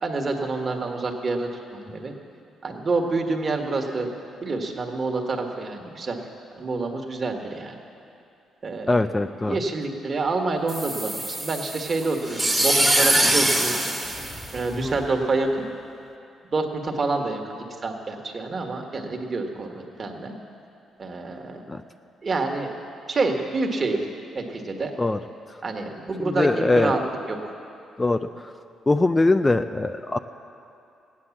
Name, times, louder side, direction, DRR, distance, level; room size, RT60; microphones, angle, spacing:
voice 1, 0.0-2.1 2.6-4.1 4.4-6.2 6.5-7.8 8.6-9.1 9.4-13.8 14.5-15.7 16.5-20.4 21.0-21.6 22.2-22.7 23.1-24.1 24.3-24.9 25.6-27.0 27.3-27.4, right 3 dB, 40° right, 2 dB, 1.7 m, -27 dB
voice 2, 8.9-9.6 14.8-14.9 21.7-21.8 25.0-25.2 26.2-27.0 28.0-28.3 28.9-30.2, left 2 dB, 20° left, 8 dB, 0.5 m, -21 dB
sound 1, 10.7-15.0, right 1 dB, 5° right, 1.5 m, -23 dB
16.0 x 9.7 x 7.3 m, 2.6 s
cardioid pair, 90°, 0 cm